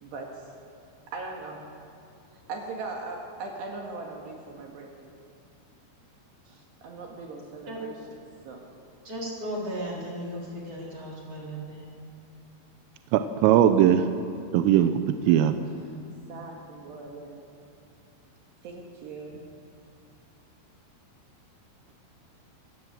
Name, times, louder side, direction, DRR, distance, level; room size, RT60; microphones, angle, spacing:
voice 1, 0.0-0.4 1.1-1.7 2.5-5.1 6.5-8.0 8.5-8.6 13.8-14.0 16.3-17.4 18.6-19.5, right 3 dB, 65° right, 0 dB, 3.5 m, -39 dB
voice 2, 9.0-11.9, equal, 30° right, -4 dB, 4.2 m, -35 dB
voice 3, 13.1-14.1 14.5-14.9 15.3-15.5, right 10 dB, 85° right, 9 dB, 3.3 m, -19 dB
26.0 x 15.0 x 7.7 m, 2.6 s
omnidirectional pair, 5.8 m